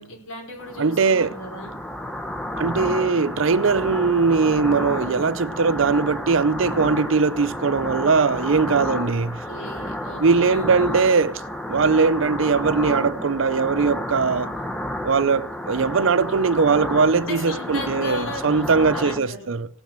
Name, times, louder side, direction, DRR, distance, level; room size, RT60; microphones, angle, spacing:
voice 1, 0.0-1.7 8.8-9.1 9.5-11.0 17.2-19.5, left 1 dB, 80° left, 4.7 m, -36 dB
sound 1, 0.6-19.2, left 1 dB, 5° left, 1.0 m, -31 dB
voice 2, 0.8-1.3 2.6-9.4 10.2-11.4 11.7-14.5 15.0-19.7, right 4 dB, 65° right, 0.6 m, -20 dB
16.5 x 6.3 x 7.4 m
head